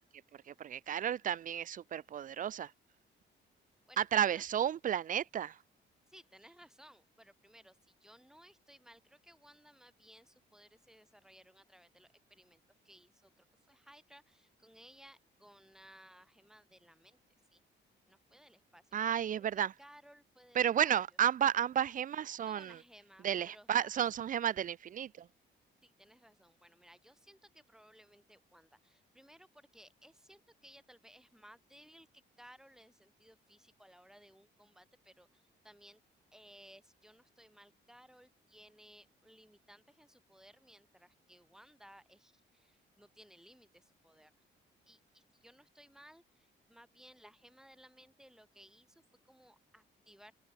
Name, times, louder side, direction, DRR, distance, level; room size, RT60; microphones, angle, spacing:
voice 1, 0.3-2.7 4.0-5.6 18.9-19.7 20.5-22.8 23.2-25.3, right 9 dB, 40° right, 0.4 m, -32 dB
voice 2, 3.9-4.4 6.1-17.2 17.5-17.6 18.1-19.0 19.4-19.5 19.8-20.7 22.5-23.9 25.8-36.0 36.3-44.3 44.9-50.3, equal, 5° right, 7.5 m, -60 dB
cardioid pair, 90°, 20 cm